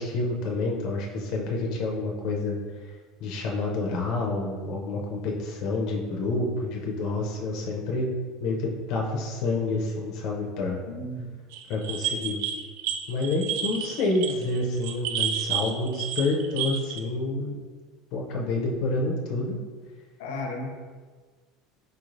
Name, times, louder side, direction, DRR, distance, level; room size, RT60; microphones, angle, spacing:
voice 1, 0.0-2.6 3.2-8.1 8.4-10.8 11.7-12.4 13.1-17.6 18.1-19.6, left 2 dB, 45° left, -1 dB, 0.5 m, -28 dB
voice 2, 10.8-11.3 20.2-20.7, left 2 dB, 85° left, 2 dB, 0.6 m, -34 dB
sound 1, 11.5-17.0, right 8 dB, 70° right, 0.4 m, -31 dB
4.6 x 3.1 x 2.5 m, 1.5 s
cardioid pair, 175°, 0 cm